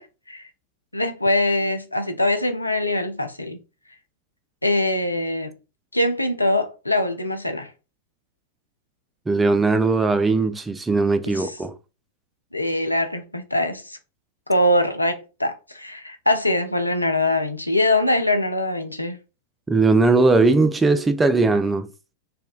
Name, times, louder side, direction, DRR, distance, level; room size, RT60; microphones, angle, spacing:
voice 1, 0.9-3.6 4.6-5.5 5.9-7.7 11.3-11.5 12.5-14.0 14.5-19.2, left 1 dB, 85° left, 0.4 m, -23 dB
voice 2, 9.3-11.8 19.7-21.9, right 3 dB, 10° right, 0.3 m, -19 dB
4.2 x 2.2 x 2.3 m
figure-of-eight pair, 90°, 0 cm